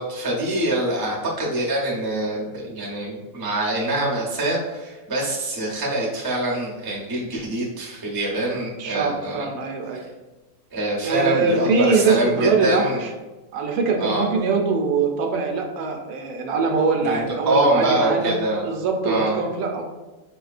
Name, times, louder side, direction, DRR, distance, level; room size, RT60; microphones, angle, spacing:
voice 1, 0.0-9.5 10.7-13.1 14.0-14.3 17.0-18.7 19.0-19.4, right 1 dB, 35° right, -3 dB, 0.3 m, -24 dB
voice 2, 8.8-10.0 11.0-13.1 13.5-18.4 18.6-19.8, right 4 dB, 75° right, 2 dB, 1.0 m, -23 dB
4.6 x 2.8 x 2.4 m, 1.1 s
omnidirectional pair, 1.7 m